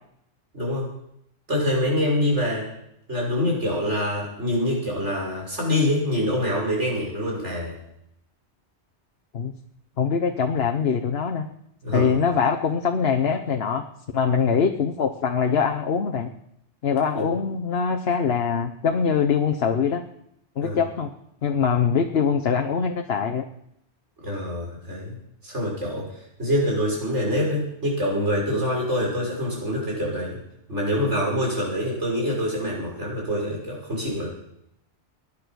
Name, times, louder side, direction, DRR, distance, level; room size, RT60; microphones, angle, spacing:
voice 1, 0.5-0.9 1.5-2.7 3.1-7.7 11.8-12.2 17.1-17.2 20.6-20.8 24.2-25.2 25.4-26.1 26.4-30.4 30.7-34.3, left 1 dB, 80° right, -3 dB, 6.5 m, -25 dB
voice 2, 10.0-11.5 11.9-13.8 14.1-16.3 16.8-20.0 20.6-21.1 21.4-23.5, left 6 dB, 60° left, 4 dB, 1.2 m, -23 dB
18.5 x 10.5 x 6.3 m, 0.76 s
omnidirectional pair, 1.2 m